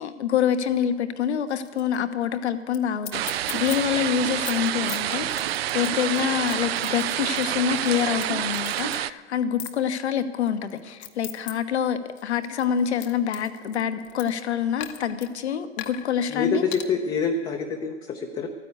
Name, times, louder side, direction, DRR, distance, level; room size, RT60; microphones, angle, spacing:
voice 1, 0.0-16.6, left 8 dB, 70° left, 10 dB, 1.2 m, -26 dB
sound 1, 1.5-2.0 2.2-2.3 2.7-2.8 3.0-3.8 4.2-8.3 8.5-9.0 9.6-9.8 10.5-11.5 11.9-14.4 14.8-15.3 15.8-16.1 16.7-16.9, left 13 dB, 40° left, 1.0 m, -39 dB
sound 2, 3.1-9.1, right 13 dB, 60° right, 0.5 m, -28 dB
voice 2, 16.3-18.5, left 5 dB, 15° left, 2 dB, 0.7 m, -26 dB
13.0 x 9.8 x 8.0 m, 1.5 s
hypercardioid pair, 130°, 35 cm